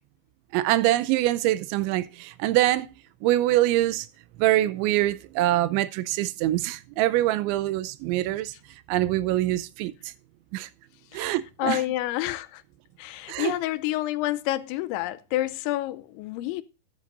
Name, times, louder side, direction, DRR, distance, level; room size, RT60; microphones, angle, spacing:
voice 1, 0.5-2.9 3.2-4.1 4.4-8.5 8.9-10.1 10.5-10.7 11.1-11.8 13.3-13.6, right 15 dB, 80° right, 2.9 m, -24 dB
voice 2, 11.1-12.6 13.0-16.6, left 15 dB, 80° left, 2.9 m, -29 dB
13.0 x 13.0 x 2.5 m
omnidirectional pair, 5.5 m